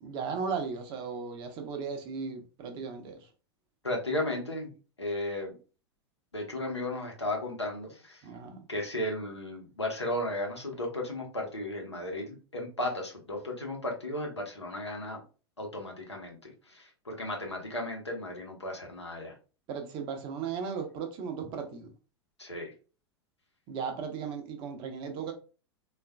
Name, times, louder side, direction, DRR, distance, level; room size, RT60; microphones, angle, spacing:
voice 1, 0.0-3.3 8.2-8.6 19.7-21.9 23.7-25.3, right 6 dB, 35° right, 0.7 m, -36 dB
voice 2, 3.8-4.7 5.0-5.6 6.3-8.2 8.7-15.2 15.6-19.3 22.4-22.7, left 1 dB, 85° left, 0.9 m, -35 dB
3.6 x 2.4 x 2.2 m
figure-of-eight pair, 90°, 14 cm